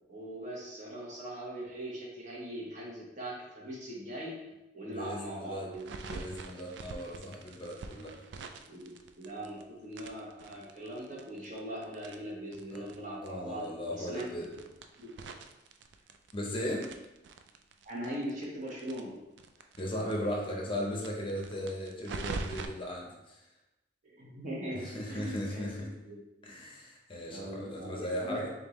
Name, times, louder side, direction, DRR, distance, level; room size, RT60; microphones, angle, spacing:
voice 1, 0.1-4.3 4.7-6.2 8.7-8.9 9.2-14.2 15.0-15.1 17.8-19.1 24.0-25.7 26.0-26.2 27.3-28.5, right 1 dB, 45° right, -4 dB, 1.1 m, -40 dB
voice 2, 4.9-5.7 6.0-8.1 12.7-12.8 13.2-14.5 16.3-16.9 19.8-23.4 24.8-25.9 26.4-28.5, equal, 30° left, -1 dB, 0.6 m, -37 dB
sound 1, 5.7-9.6 9.9-13.0 13.2-13.3 13.6-13.7 14.1-16.5 16.8-19.8 20.1-20.2 20.5-20.6 20.9-22.7, right 4 dB, 70° right, 0.3 m, -43 dB
3.7 x 3.6 x 3.0 m, 0.97 s
head